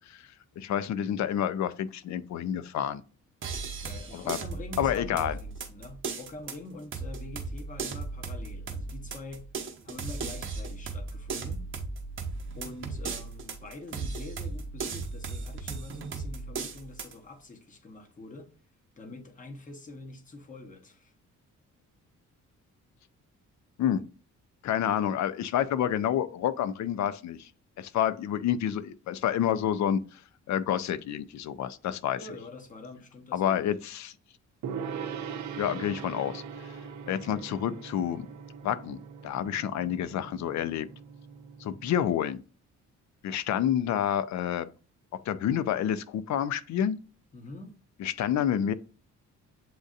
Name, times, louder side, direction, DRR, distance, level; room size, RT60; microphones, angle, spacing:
voice 1, 0.6-3.0 4.1-4.4 4.8-5.4 23.8-24.0 24.6-27.5 27.8-30.2 30.5-32.2 33.3-34.1 35.6-36.8 37.1-38.3 38.6-40.9 41.6-42.4 43.2-44.7 45.3-47.0 48.0-48.7, left 10 dB, 70° left, 0.5 m, -29 dB
sound 1, 3.4-17.1, right 4 dB, 45° right, 0.8 m, -36 dB
voice 2, 3.8-9.5 9.8-11.7 12.5-18.5 19.0-21.1 32.2-33.7 47.3-47.7, left 2 dB, 25° left, 1.0 m, -45 dB
Gong, 34.6-42.1, right 6 dB, 70° right, 0.6 m, -41 dB
7.7 x 2.6 x 2.4 m
cardioid pair, 120°, 30 cm